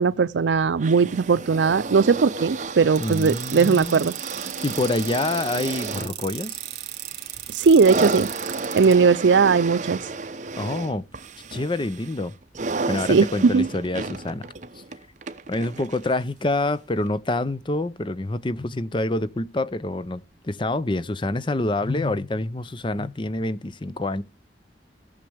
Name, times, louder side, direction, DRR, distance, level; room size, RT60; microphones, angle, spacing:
voice 1, 0.0-4.2 7.5-8.3 8.7-10.0 13.1-13.7, right 5 dB, 90° right, 0.5 m, -18 dB
sound 1, 0.8-16.2 17.1-17.2, right 3 dB, 45° right, 0.8 m, -33 dB
voice 2, 3.0-4.1 4.6-6.6 10.6-11.0 11.5-12.3 12.9-14.5 15.5-24.2, left 2 dB, 30° left, 0.6 m, -27 dB
sound 2, 3.0-8.9, right 13 dB, 60° right, 2.1 m, -35 dB
17.5 x 6.6 x 3.4 m
head